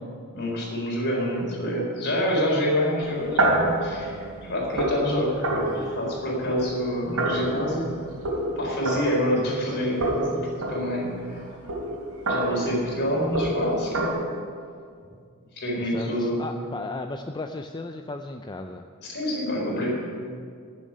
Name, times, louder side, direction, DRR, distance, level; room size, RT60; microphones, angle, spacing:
voice 1, 0.3-7.8 8.6-10.4 10.7-11.4 12.3-14.2 15.5-16.4 19.0-20.0, equal, 55° left, -3 dB, 4.3 m, -27 dB
sound 1, 3.0-9.7 10.0-14.1, right 1 dB, 80° right, 3.3 m, -28 dB
voice 2, 15.8-18.8, left 2 dB, 20° left, 5 dB, 0.4 m, -35 dB
12.0 x 7.5 x 9.4 m, 2.2 s
head